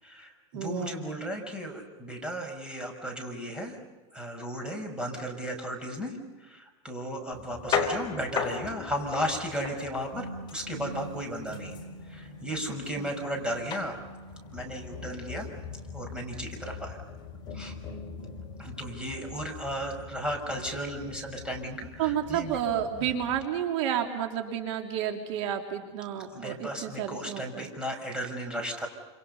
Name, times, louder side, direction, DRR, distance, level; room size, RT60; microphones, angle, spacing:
voice 1, 0.0-3.8 4.1-11.8 12.1-14.0 14.5-15.5 15.9-17.0 17.5-17.7 18.6-22.6 23.0-23.1 26.3-28.9, equal, 5° right, 2 dB, 6.0 m, -35 dB
voice 2, 0.5-1.0 13.0-13.1 22.0-27.7, right 9 dB, 70° right, 3 dB, 3.4 m, -31 dB
sound 1, 7.3-23.5, left 5 dB, 30° left, 4.6 m, -38 dB
29.0 x 28.0 x 5.6 m, 1.2 s
supercardioid pair, 145°, 16 cm